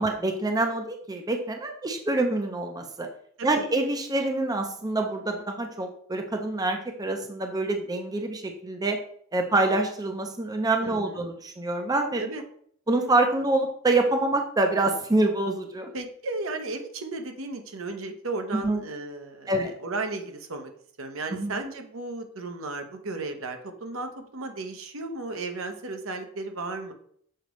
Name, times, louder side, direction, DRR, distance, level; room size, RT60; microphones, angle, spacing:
voice 1, 0.0-3.1 3.4-9.0 9.3-12.2 12.9-15.9 18.5-18.8 19.5-19.7 21.3-21.6, right 2 dB, 20° right, 4 dB, 0.5 m, -26 dB
voice 2, 10.8-11.3 12.2-12.4 15.9-19.5 19.8-20.7 21.0-26.9, right 3 dB, 70° right, 5 dB, 0.9 m, -34 dB
6.6 x 5.1 x 3.1 m, 0.63 s
head